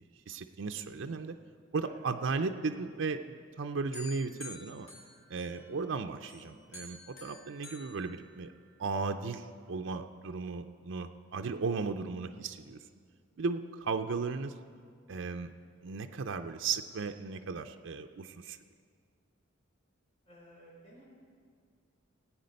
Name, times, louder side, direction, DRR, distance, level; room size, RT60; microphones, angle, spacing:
voice 1, 0.3-1.4 1.7-4.9 5.3-8.5 8.8-12.8 13.4-14.5 15.1-15.5 15.8-18.6, right 4 dB, 65° right, 6 dB, 0.5 m, -36 dB
sound 1, 3.9-5.9 6.3-8.8, left 3 dB, 85° left, 3.7 m, -50 dB
voice 2, 20.2-21.0, right 1 dB, 30° left, -5 dB, 4.1 m, -56 dB
17.5 x 8.5 x 5.3 m, 2.1 s
head